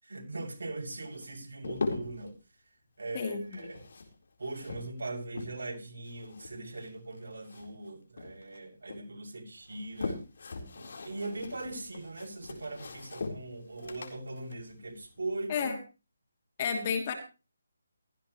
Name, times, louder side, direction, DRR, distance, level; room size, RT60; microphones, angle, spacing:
voice 1, 0.0-2.4 3.0-3.8 4.4-10.2 10.7-15.8, right 2 dB, 70° right, 6.9 m, -40 dB
sound 1, 1.0-2.3 3.4-5.8 6.0-7.9 8.2-9.0 9.6-15.6, left 3 dB, 60° left, 4.2 m, -41 dB
voice 2, 16.6-17.1, left 6 dB, 30° left, 3.0 m, -30 dB
16.0 x 15.0 x 3.2 m
hypercardioid pair, 165°, 0 cm